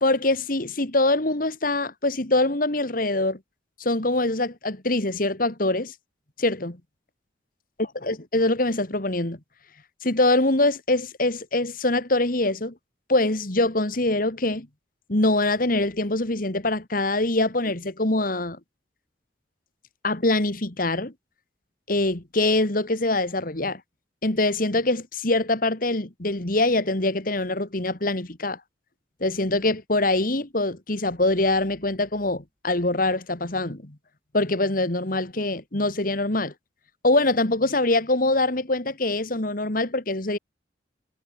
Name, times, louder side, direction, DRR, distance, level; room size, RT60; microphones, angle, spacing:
voice 1, 0.0-3.4 3.8-5.9 6.4-6.8 8.0-9.4 10.0-12.7 13.1-14.7 15.1-18.6 20.0-21.1 21.9-23.8 24.2-28.6 29.2-34.0 34.3-36.5 37.0-40.4, left 2 dB, 50° left, 2.2 m, -24 dB
head